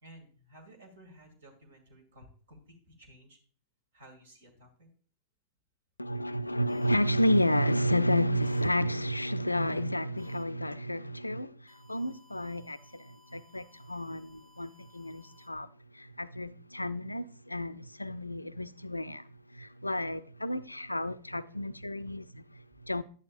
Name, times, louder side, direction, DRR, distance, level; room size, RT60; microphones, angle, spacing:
voice 1, 0.0-3.4 3.9-4.9 22.0-22.1, right 1 dB, 65° right, 2.2 m, -55 dB
voice 2, 6.0-23.0, equal, 85° left, 0.4 m, -31 dB
sound 1, 6.7-6.9 8.4-8.7 10.2-10.4 11.7-15.5, left 3 dB, 40° right, 4.7 m, -61 dB
11.0 x 9.6 x 2.5 m
figure-of-eight pair, 90°, 0 cm